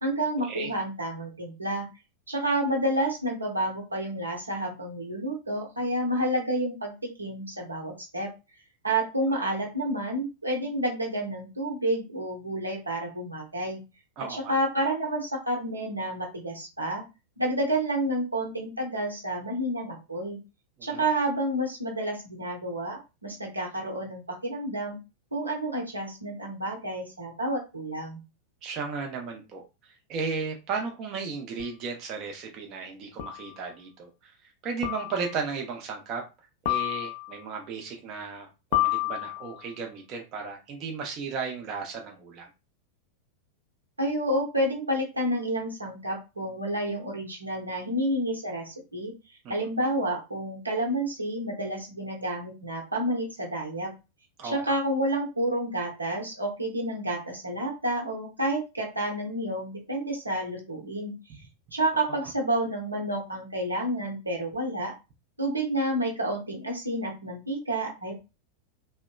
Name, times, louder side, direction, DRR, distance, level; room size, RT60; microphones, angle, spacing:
voice 1, 0.0-1.9 2.3-8.3 8.8-13.8 14.3-17.0 17.4-20.4 20.8-25.0 25.3-28.2 44.0-49.1 49.5-53.9 54.4-61.1 61.7-64.9 65.4-68.2, right 1 dB, 80° right, -1 dB, 0.9 m, -29 dB
voice 2, 14.2-14.6 20.9-21.0 28.6-34.3 34.6-36.2 36.6-42.5 49.4-49.5 54.4-54.7, right 5 dB, 35° right, 2 dB, 0.5 m, -35 dB
sound 1, 31.6-31.7 33.2-33.6 34.8-35.4 36.7-37.4 38.7-39.7, left 15 dB, 50° left, 0.4 m, -29 dB
2.7 x 2.1 x 2.2 m, 0.27 s
figure-of-eight pair, 90°, 0 cm